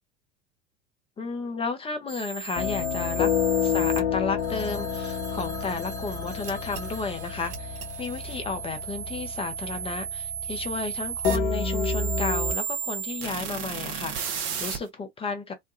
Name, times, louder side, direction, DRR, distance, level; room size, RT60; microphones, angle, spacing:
voice 1, 1.2-3.3 3.6-15.5, left 4 dB, 15° left, 0.6 m, -33 dB
sound 1, 2.1-4.0 6.4-14.8, right 8 dB, 40° right, 0.8 m, -34 dB
sound 2, 2.6-12.6, left 6 dB, 45° left, 0.9 m, -29 dB
Telephone, 4.4-8.6, right 3 dB, 60° right, 1.3 m, -44 dB
3.0 x 2.1 x 2.5 m
figure-of-eight pair, 80°, 36 cm